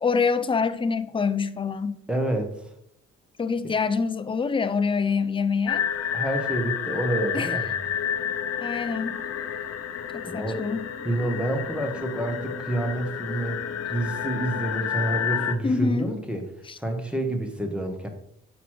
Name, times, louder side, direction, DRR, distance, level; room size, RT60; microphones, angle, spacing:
voice 1, 0.0-2.0 3.4-5.8 7.3-7.5 8.6-9.2 10.1-10.8 15.6-16.1 16.7-16.8, left 5 dB, 15° left, 0.4 m, -25 dB
voice 2, 2.1-2.6 6.1-7.8 10.2-10.6 11.0-13.6 13.9-16.4 16.8-18.1, right 1 dB, 5° right, 1.1 m, -28 dB
sound 1, 5.7-15.5, left 8 dB, 55° left, 0.7 m, -30 dB
6.0 x 4.0 x 4.6 m
cardioid pair, 90°, 30 cm